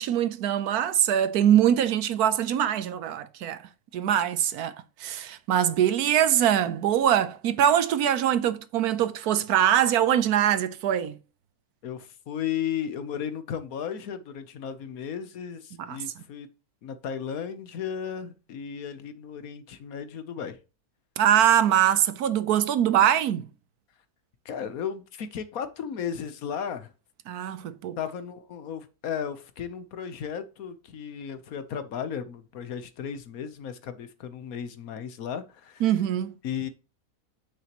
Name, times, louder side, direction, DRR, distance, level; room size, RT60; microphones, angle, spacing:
voice 1, 0.0-3.6 3.9-4.7 5.0-11.2 15.8-16.0 21.2-23.4 27.3-28.0 35.8-36.4, right 10 dB, 80° right, 1.2 m, -23 dB
voice 2, 11.8-16.5 16.8-20.6 24.4-26.9 28.0-35.8 36.4-36.7, left 8 dB, 70° left, 1.3 m, -35 dB
9.0 x 6.9 x 3.0 m
omnidirectional pair, 1.6 m